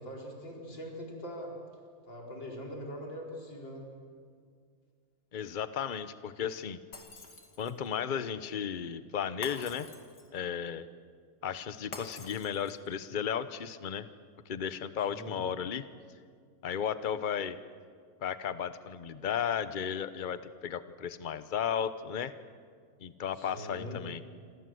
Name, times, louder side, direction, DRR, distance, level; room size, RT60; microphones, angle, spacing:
voice 1, 0.0-1.5 2.0-3.9 15.1-15.4 23.4-24.0, equal, 80° left, -1 dB, 5.3 m, -42 dB
voice 2, 5.3-6.8 7.6-9.9 10.3-10.8 11.4-14.1 14.5-15.9 16.6-17.6 18.2-22.3 23.0-24.2, left 8 dB, 40° left, 13 dB, 0.7 m, -34 dB
Shatter, 6.9-7.9 9.4-10.4 11.9-12.9, left 2 dB, 60° left, 3.0 m, -47 dB
27.5 x 26.0 x 7.8 m, 2.1 s
omnidirectional pair, 2.0 m